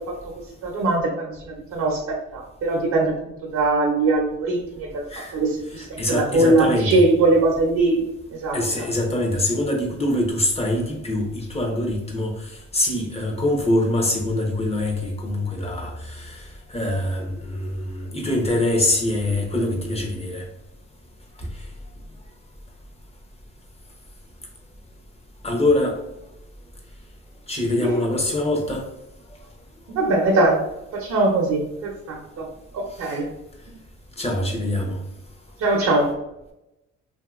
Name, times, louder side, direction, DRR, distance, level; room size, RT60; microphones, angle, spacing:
voice 1, 0.6-1.3 1.7-3.1 3.5-5.0 5.3-5.5 5.7-8.0 8.4-8.6 27.8-27.9 29.9-30.6 31.0-32.4 32.7-33.2 35.6-36.1, right 2 dB, 65° right, -1 dB, 0.7 m, -21 dB
voice 2, 5.7-7.1 8.5-20.5 21.4-21.5 25.4-26.0 27.5-28.8 33.0-33.2 34.2-35.0, left 1 dB, 20° left, 0 dB, 0.8 m, -24 dB
2.8 x 2.7 x 2.4 m, 0.89 s
cardioid pair, 90°, 30 cm